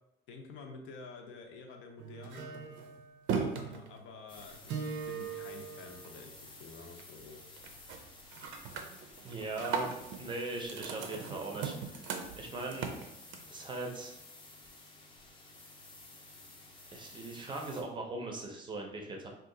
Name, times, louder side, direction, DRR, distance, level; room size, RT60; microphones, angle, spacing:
voice 1, 0.3-2.5 3.4-7.4, left 4 dB, 75° left, 3 dB, 0.6 m, -49 dB
sound 1, 2.0-6.5 6.8-7.2 7.6-8.0 8.3-13.6, right 6 dB, 90° right, 0.5 m, -39 dB
sound 2, 4.3-17.8, left 2 dB, 25° left, 0.6 m, -53 dB
voice 2, 9.2-9.9 10.2-12.0 12.4-12.9 13.5-14.1 16.9-19.3, right 2 dB, 25° right, 2 dB, 0.5 m, -39 dB
2.7 x 2.4 x 3.8 m, 0.84 s
cardioid pair, 155°, 20 cm